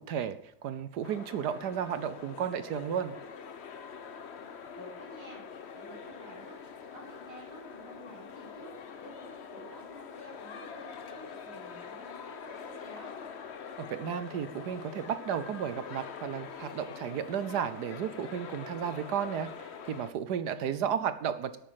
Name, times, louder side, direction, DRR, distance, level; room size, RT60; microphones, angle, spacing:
voice 1, 0.1-3.1 13.8-21.6, right 8 dB, 65° right, 12 dB, 1.1 m, -33 dB
sound 1, 1.0-20.1, left 6 dB, 55° left, 0.7 m, -44 dB
voice 2, 4.8-13.1 20.6-20.9, right 1 dB, 40° right, -7 dB, 4.4 m, -50 dB
11.0 x 8.6 x 7.5 m, 0.72 s
omnidirectional pair, 2.2 m